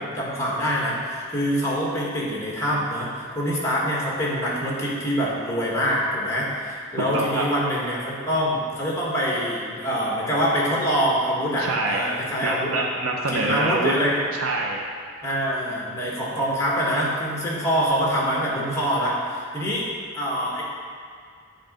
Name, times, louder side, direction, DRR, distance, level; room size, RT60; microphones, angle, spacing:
voice 1, 0.0-12.7 13.3-14.2 15.2-19.8 20.1-20.6, equal, 15° left, -5 dB, 1.5 m, -25 dB
voice 2, 7.0-7.4 11.6-12.1 12.4-13.9 14.3-14.8, right 2 dB, 85° right, 0 dB, 0.7 m, -25 dB
8.4 x 3.9 x 5.1 m, 2.2 s
head